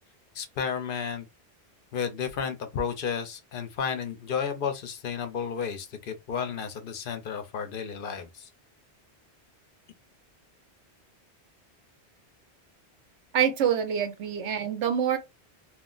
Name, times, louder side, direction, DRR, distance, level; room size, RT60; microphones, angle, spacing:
voice 1, 0.4-1.3 1.9-8.5, left 6 dB, 60° left, 0.7 m, -32 dB
voice 2, 13.3-15.2, right 8 dB, 90° right, 1.0 m, -26 dB
2.4 x 2.0 x 3.6 m
omnidirectional pair, 1.1 m